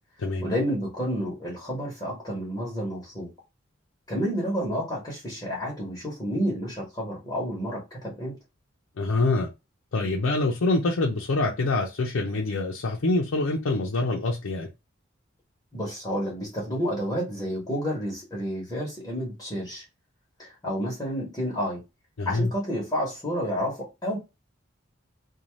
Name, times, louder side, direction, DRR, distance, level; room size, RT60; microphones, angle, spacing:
voice 1, 0.4-3.3 4.1-8.4 15.7-19.8 20.4-21.8 22.2-24.2, equal, 20° left, 0.9 m, -30 dB
voice 2, 9.0-9.5 9.9-14.7 22.2-22.5, left 2 dB, 85° left, 0.5 m, -25 dB
2.6 x 2.2 x 3.0 m
head